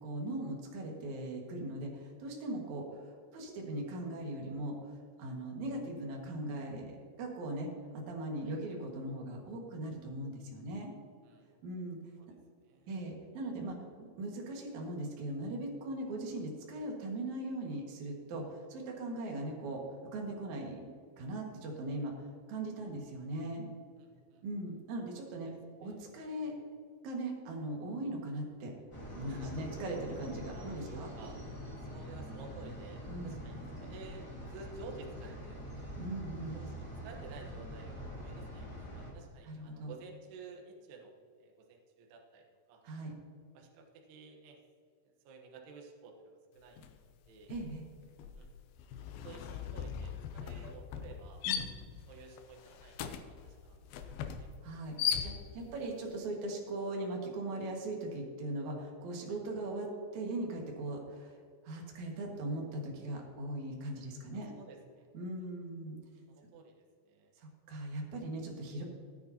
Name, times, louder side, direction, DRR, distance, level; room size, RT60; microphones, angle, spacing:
voice 1, 0.0-3.0 3.3-4.8 5.2-6.9 7.2-10.9 11.6-12.0 12.9-13.8 14.2-19.8 20.1-20.8 21.2-23.6 24.4-25.5 25.8-26.5 27.0-28.7 29.1-31.1 33.1-33.4 36.0-36.6 39.5-39.9 42.8-43.1 47.5-47.8 51.4-51.6 54.6-55.0 55.2-61.4 61.6-64.5 65.1-66.0 67.4-68.8, right 1 dB, 55° right, 0 dB, 2.5 m, -39 dB
voice 2, 12.2-12.9 24.0-24.4 25.4-25.5 25.8-26.0 26.4-26.5 29.3-29.6 30.5-31.4 31.9-35.9 36.5-42.8 43.5-44.6 45.0-46.8 47.3-47.5 48.3-48.5 49.1-51.4 52.1-53.8 54.2-54.5 55.1-55.7 59.3-59.4 64.3-65.1 66.3-67.3 68.4-68.5, right 4 dB, 70° right, 1 dB, 3.0 m, -53 dB
sound 1, 28.9-39.1, equal, 10° left, 1.9 m, -44 dB
sound 2, 46.8-47.0 47.3-55.8, left 8 dB, 85° left, 2.1 m, -39 dB
18.0 x 9.4 x 2.9 m, 2.2 s
omnidirectional pair, 5.2 m